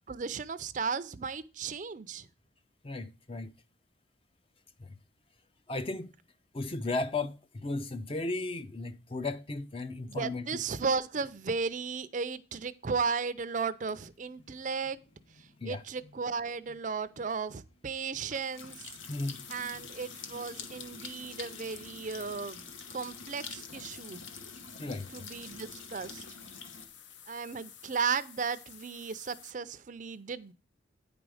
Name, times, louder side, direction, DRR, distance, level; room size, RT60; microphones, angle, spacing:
voice 1, 0.1-2.3 10.0-15.0 15.4-18.9 19.5-22.6 22.9-24.2 25.1-26.2 27.3-30.5, right 5 dB, 40° right, 0.5 m, -35 dB
voice 2, 2.8-3.5 5.7-6.1 6.5-10.6 15.6-15.8 19.1-19.4 24.8-25.3, left 2 dB, 30° left, 0.5 m, -35 dB
sound 1, 13.9-26.9, left 5 dB, 90° left, 1.2 m, -47 dB
sound 2, 19.0-29.5, left 8 dB, 70° left, 0.8 m, -52 dB
9.4 x 5.1 x 4.8 m
head